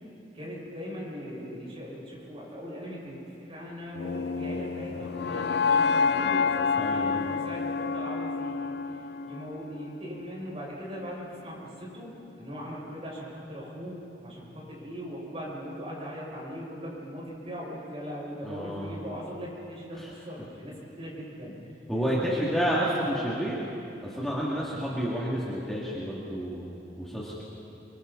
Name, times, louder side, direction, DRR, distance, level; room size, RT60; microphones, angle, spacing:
voice 1, 0.3-12.1 12.4-22.7 27.2-27.3, equal, 35° right, -5 dB, 7.2 m, -40 dB
sound 1, 3.9-10.0, left 5 dB, 70° left, 0.6 m, -28 dB
voice 2, 6.8-7.2 18.4-18.9 20.0-20.1 21.9-23.7 24.0-26.6 27.0-27.4, equal, ahead, -7 dB, 2.7 m, -30 dB
27.5 x 25.5 x 4.2 m, 2.8 s
head